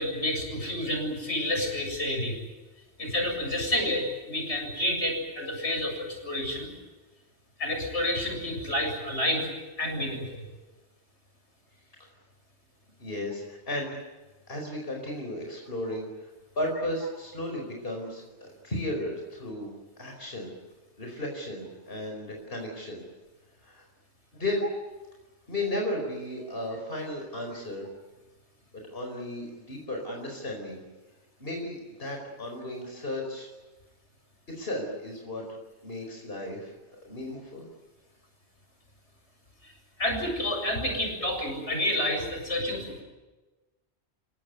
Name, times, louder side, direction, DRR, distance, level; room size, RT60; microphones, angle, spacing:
voice 1, 0.0-2.4 3.0-6.7 7.6-9.5 9.8-10.5 39.6-39.7 40.0-43.0, left 1 dB, 85° left, 2 dB, 7.8 m, -29 dB
voice 2, 13.0-14.0 14.5-16.3 16.5-19.7 20.0-20.5 21.0-23.0 23.6-23.8 24.3-24.6 25.5-27.8 28.9-30.8 31.4-33.5 34.5-35.4 35.8-36.7 37.0-37.7, left 1 dB, 55° left, 1 dB, 5.1 m, -34 dB
30.0 x 17.5 x 9.8 m, 1.1 s
omnidirectional pair, 1.1 m